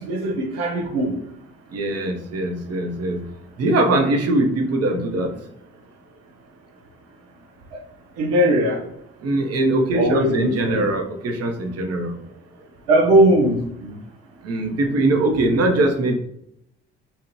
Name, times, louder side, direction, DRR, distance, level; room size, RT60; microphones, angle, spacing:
voice 1, 0.1-1.1 8.2-8.8 9.9-10.9 12.9-13.6, right 1 dB, 80° right, 0 dB, 0.7 m, -18 dB
voice 2, 1.7-3.2 3.6-5.3 9.2-12.1 14.4-16.1, right 2 dB, 50° right, 5 dB, 0.9 m, -21 dB
4.2 x 2.4 x 3.1 m, 0.75 s
hypercardioid pair, 50°, 32 cm